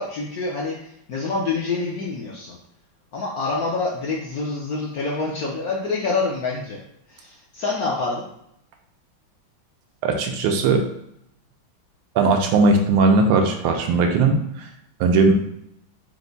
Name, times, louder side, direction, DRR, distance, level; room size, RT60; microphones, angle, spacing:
voice 1, 0.0-2.6 3.1-6.8 7.1-8.3, left 3 dB, 70° left, -3 dB, 0.9 m, -26 dB
voice 2, 10.0-10.8 12.1-14.7 15.0-15.3, right 3 dB, 90° right, 4 dB, 1.5 m, -18 dB
4.6 x 2.1 x 3.9 m, 0.75 s
omnidirectional pair, 2.3 m